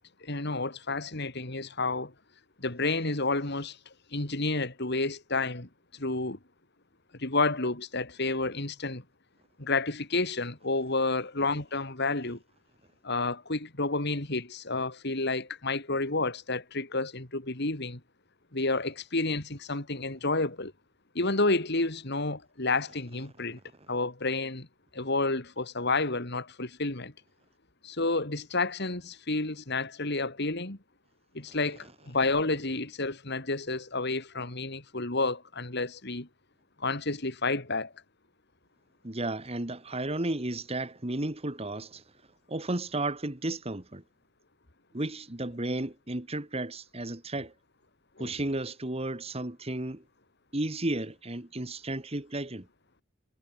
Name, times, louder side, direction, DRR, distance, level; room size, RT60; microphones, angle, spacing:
voice 1, 0.2-2.1 2.6-3.8 4.1-6.4 7.2-9.0 9.6-12.4 13.0-18.0 18.5-20.7 21.1-23.6 23.9-24.7 24.9-27.1 27.8-30.8 31.3-36.3 36.8-37.9 48.2-48.3, left 3 dB, 55° left, 3.0 m, -30 dB
voice 2, 39.0-42.0 42.5-44.0 44.9-47.5 48.2-50.0 50.5-52.7, right 2 dB, 30° right, 1.8 m, -33 dB
head